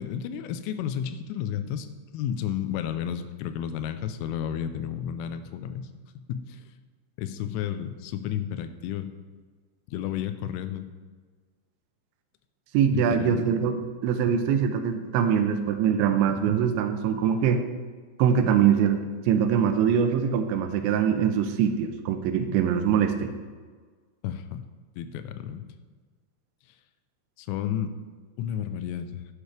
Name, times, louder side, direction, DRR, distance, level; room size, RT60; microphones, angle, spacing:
voice 1, 0.0-1.9 2.1-5.9 6.3-6.6 7.2-9.1 9.9-10.9 12.9-13.5 24.2-24.6 25.0-25.7 27.4-27.9 28.4-29.3, left 9 dB, 85° left, 10 dB, 3.1 m, -32 dB
voice 2, 12.7-13.8 14.0-17.6 18.2-23.3, right 8 dB, 80° right, 7 dB, 2.8 m, -23 dB
11.0 x 10.0 x 3.3 m, 1.5 s
omnidirectional pair, 5.6 m